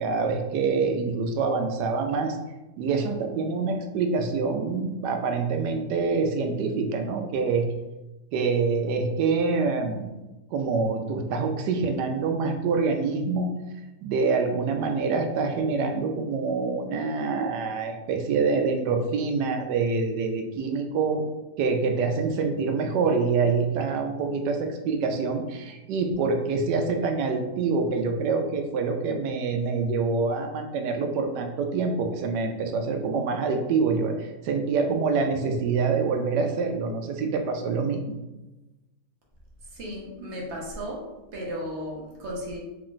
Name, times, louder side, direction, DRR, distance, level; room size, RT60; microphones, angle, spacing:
voice 1, 0.0-2.4 2.8-7.7 8.3-10.1 10.5-13.5 14.0-21.2 21.6-38.0, right 4 dB, 85° right, 4 dB, 1.2 m, -26 dB
voice 2, 39.7-41.0 41.3-42.6, equal, 50° right, -3 dB, 1.1 m, -35 dB
3.5 x 2.4 x 3.7 m, 1.0 s
omnidirectional pair, 1.8 m